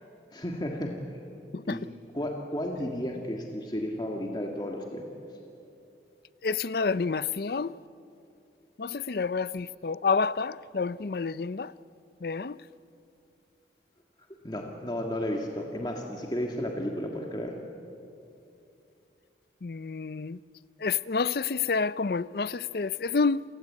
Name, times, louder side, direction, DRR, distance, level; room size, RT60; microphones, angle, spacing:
voice 1, 0.3-1.0 1.6-1.9 2.1-5.1 14.4-17.5, left 1 dB, 25° left, 1.8 m, -33 dB
voice 2, 6.4-7.7 8.8-11.7 12.2-12.6 19.6-20.4 20.8-23.4, left 5 dB, 60° left, 0.5 m, -29 dB
29.0 x 18.5 x 8.4 m
head